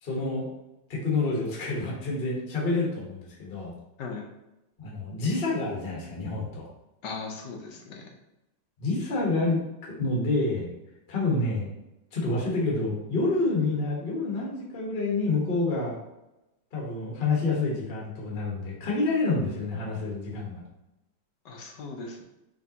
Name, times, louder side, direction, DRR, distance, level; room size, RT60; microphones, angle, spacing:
voice 1, 0.0-0.5 0.9-3.7 4.8-6.7 8.8-10.7 11.1-11.7 12.1-16.0 16.7-20.6, left 3 dB, 35° left, -4 dB, 1.0 m, -28 dB
voice 2, 7.0-8.1 21.4-22.2, left 4 dB, 65° left, 1 dB, 1.3 m, -38 dB
5.3 x 3.3 x 2.8 m, 0.93 s
omnidirectional pair, 2.3 m